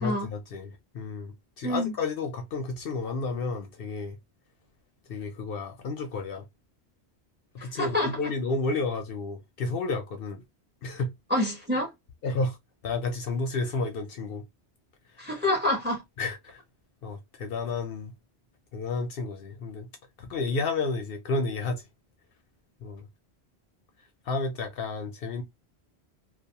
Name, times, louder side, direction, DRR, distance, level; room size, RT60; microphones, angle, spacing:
voice 1, 0.0-4.2 5.1-6.4 7.5-10.4 10.8-11.1 12.2-12.6 12.8-14.4 16.2-16.6 17.0-18.1 18.7-19.9 20.2-21.8 22.8-23.1 24.3-25.4, left 3 dB, 65° left, 0.7 m, -31 dB
voice 2, 1.6-1.9 7.6-8.1 11.3-11.9 15.2-16.0, left 1 dB, 10° right, 0.7 m, -27 dB
2.3 x 2.3 x 2.7 m
omnidirectional pair, 1.1 m